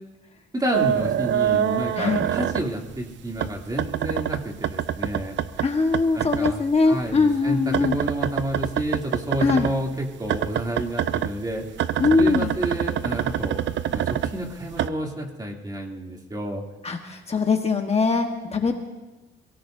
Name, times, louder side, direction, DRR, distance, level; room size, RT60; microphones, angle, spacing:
voice 1, 0.5-5.4 6.1-11.6 12.2-13.6 13.9-16.6, right 1 dB, 20° right, 0 dB, 2.9 m, -30 dB
sound 1, 0.7-3.0 3.4-6.5 6.8-9.8 10.3-14.9, right 10 dB, 70° right, 0.7 m, -25 dB
voice 2, 5.6-8.0 9.4-9.7 12.0-12.5 16.8-18.7, left 4 dB, 30° left, 3 dB, 1.4 m, -21 dB
27.5 x 17.5 x 2.7 m, 1.1 s
cardioid pair, 90°, 20 cm